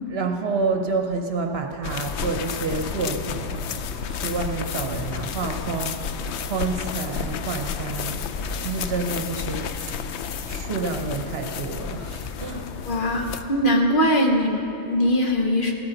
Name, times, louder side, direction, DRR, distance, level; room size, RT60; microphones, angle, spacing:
voice 1, 0.1-3.8 4.1-9.7 10.4-12.7, right 4 dB, 60° right, 4 dB, 1.0 m, -29 dB
sound 1, 1.8-13.4, left 6 dB, 70° left, 0.8 m, -31 dB
voice 2, 12.9-15.7, equal, 50° left, 2 dB, 1.2 m, -21 dB
14.5 x 13.0 x 3.9 m, 2.8 s
omnidirectional pair, 1.2 m